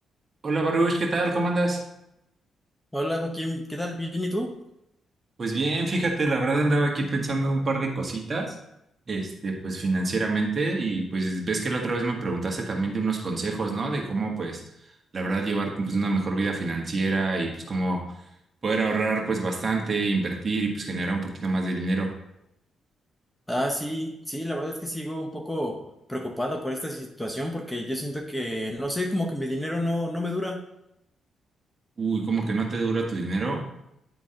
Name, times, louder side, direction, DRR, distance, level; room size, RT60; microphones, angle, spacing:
voice 1, 0.4-1.8 5.4-8.5 9.1-14.6 15.1-18.0 18.6-22.1 32.0-33.6, right 3 dB, 40° right, 0 dB, 1.6 m, -26 dB
voice 2, 2.9-4.5 23.5-30.6, left 1 dB, 5° left, 2 dB, 0.9 m, -30 dB
10.0 x 3.8 x 3.8 m, 0.83 s
cardioid pair, 80°, 0 cm